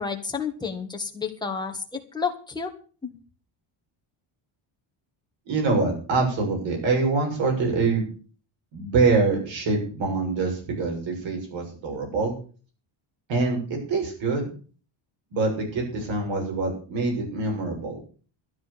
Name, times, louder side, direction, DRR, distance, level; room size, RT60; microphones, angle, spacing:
voice 1, 0.0-2.7 3.0-3.1, left 5 dB, 10° left, 2 dB, 1.7 m, -30 dB
voice 2, 5.5-8.1 8.7-12.4 13.3-14.5 15.3-18.0, right 3 dB, 60° right, 1 dB, 7.1 m, -25 dB
13.0 x 9.6 x 6.8 m, 0.40 s
cardioid pair, 175°, 49 cm